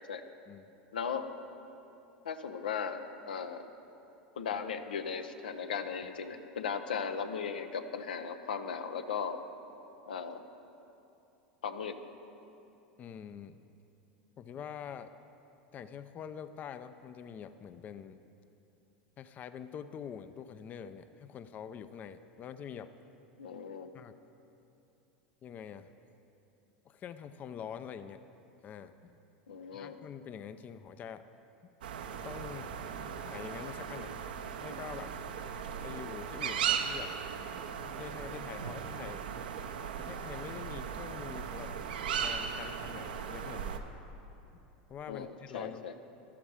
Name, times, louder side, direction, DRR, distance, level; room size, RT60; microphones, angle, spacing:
voice 1, 0.9-1.3 2.2-3.7 4.4-9.4 10.1-10.4 11.6-12.0 23.4-23.9 29.5-30.0 45.1-45.9, left 6 dB, 90° left, 8 dB, 0.8 m, -37 dB
voice 2, 13.0-13.6 14.4-15.1 15.7-18.2 19.2-22.9 23.9-24.2 25.4-25.9 26.8-28.2 28.6-29.1 29.7-31.2 32.2-32.7 33.2-34.1 34.6-35.1 35.8-37.1 37.8-39.2 40.0-41.7 42.2-43.9 44.9-45.8, left 8 dB, 35° left, 11 dB, 0.5 m, -45 dB
sound 1, 31.8-43.8, right 7 dB, 85° right, 0.8 m, -37 dB
13.0 x 12.0 x 4.8 m, 2.8 s
hypercardioid pair, 105°, 5 cm